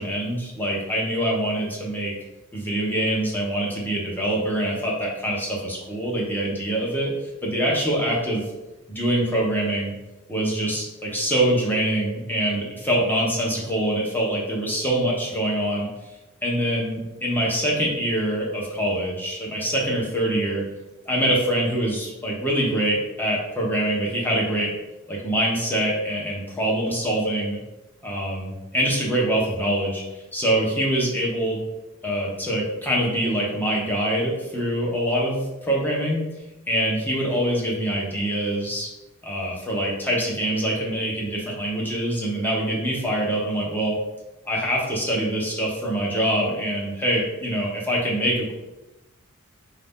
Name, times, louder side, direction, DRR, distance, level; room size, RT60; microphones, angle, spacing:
voice 1, 0.0-2.1 2.5-7.1 7.4-8.4 8.9-9.9 10.3-15.9 16.4-20.6 21.1-24.7 25.1-27.6 28.0-30.0 30.3-31.6 32.0-36.2 36.7-38.9 39.2-44.0 44.5-48.5, right 1 dB, 10° left, -4 dB, 1.0 m, -24 dB
4.6 x 2.8 x 3.6 m, 1.0 s
head